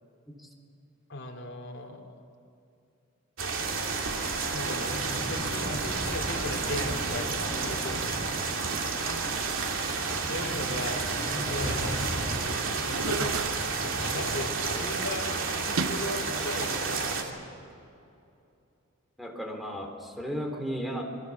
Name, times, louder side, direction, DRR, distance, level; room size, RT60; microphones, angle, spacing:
voice 1, 1.1-2.1 4.5-8.4 10.3-12.1 12.8-15.3 15.7-17.4, left 2 dB, 60° left, 2 dB, 3.1 m, -38 dB
sound 1, 3.4-17.2, right 4 dB, 70° right, 3.0 m, -31 dB
sound 2, 3.8-15.5, equal, 20° right, 7.5 m, -39 dB
Chatter / Gurgling / Tap, 8.3-17.3, right 5 dB, 90° right, 0.9 m, -39 dB
voice 2, 19.2-21.0, equal, ahead, 3 dB, 3.4 m, -35 dB
28.5 x 22.5 x 7.1 m, 2.7 s
head